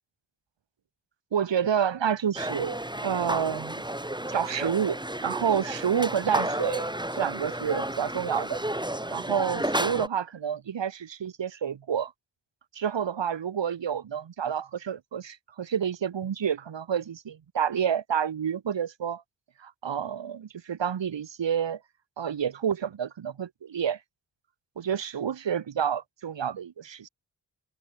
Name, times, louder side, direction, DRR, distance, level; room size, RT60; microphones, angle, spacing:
voice 1, 1.3-3.8 4.3-8.6 9.1-12.1 12.7-19.2 19.6-21.8 22.2-24.0 24.8-27.1, right 8 dB, 85° right, 2.5 m, -29 dB
sound 1, 2.4-10.1, right 1 dB, 10° right, 5.2 m, -32 dB
open air
cardioid pair, 65°, 43 cm